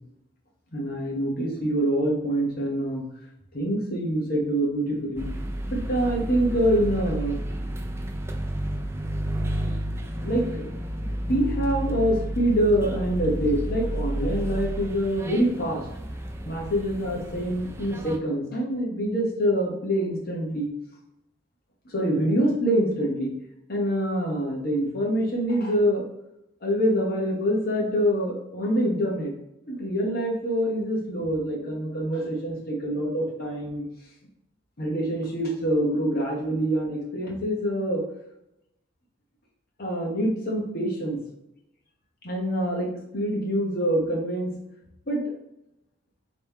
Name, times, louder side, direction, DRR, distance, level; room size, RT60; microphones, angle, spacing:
voice 1, 0.7-3.1 3.5-5.2 5.7-7.4 9.5-9.6 9.9-10.7 11.3-15.9 16.5-20.7 21.8-23.3 23.7-26.0 26.6-29.3 29.7-33.9 34.8-38.0 39.8-41.2 42.2-44.5 45.1-45.2, equal, 55° left, -1 dB, 1.2 m, -25 dB
sound 1, 5.2-18.2, right 1 dB, 15° right, 0.4 m, -31 dB
4.3 x 3.3 x 3.6 m, 0.84 s
head